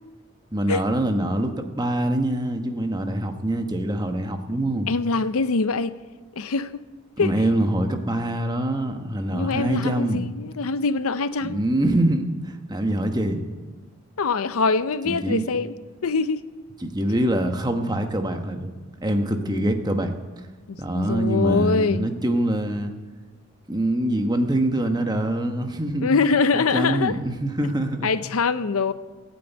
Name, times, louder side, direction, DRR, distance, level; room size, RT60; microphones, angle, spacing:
voice 1, 0.5-4.9 7.2-10.3 11.4-13.4 15.0-15.5 16.8-18.7 19.0-20.1 20.8-22.9 23.7-26.1 26.5-28.1, right 1 dB, 20° right, 1.1 m, -24 dB
voice 2, 4.9-5.9 6.4-6.8 7.2-7.3 9.3-11.6 14.2-15.8 16.0-16.4 19.5-19.7 20.7-22.1 26.0-27.2 28.0-28.9, left 4 dB, 80° left, 0.6 m, -23 dB
15.5 x 8.6 x 9.0 m
head